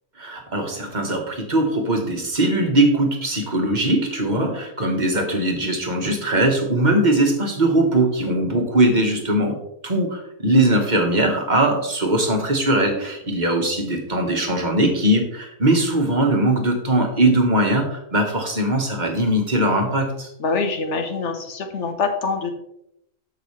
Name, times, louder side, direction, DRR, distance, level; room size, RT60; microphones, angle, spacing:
voice 1, 0.2-9.6 9.8-20.3, right 1 dB, 30° right, 2 dB, 1.5 m, -20 dB
voice 2, 20.4-22.6, left 4 dB, 55° left, 6 dB, 1.3 m, -25 dB
13.0 x 5.5 x 3.3 m, 0.79 s
omnidirectional pair, 1.6 m